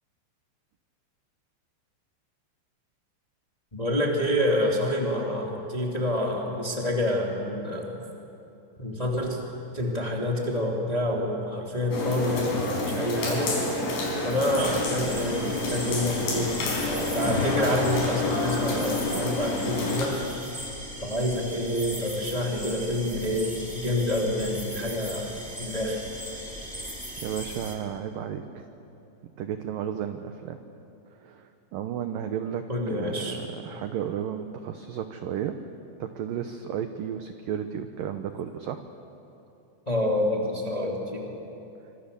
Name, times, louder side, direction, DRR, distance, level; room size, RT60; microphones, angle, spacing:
voice 1, 3.7-7.9 8.8-9.4 9.7-13.5 14.2-16.5 17.1-20.2 21.0-26.0 32.7-33.4 39.8-41.4, left 1 dB, 15° left, -1 dB, 1.7 m, -27 dB
sound 1, 11.9-20.1, left 2 dB, 75° left, 7.2 m, -28 dB
sound 2, 14.6-27.7, equal, 5° right, 1.6 m, -39 dB
voice 2, 27.2-28.7 29.2-30.6 31.1-35.6 36.0-38.8, right 9 dB, 85° right, 7 dB, 2.0 m, -33 dB
27.5 x 26.0 x 6.9 m, 2.8 s
omnidirectional pair, 5.3 m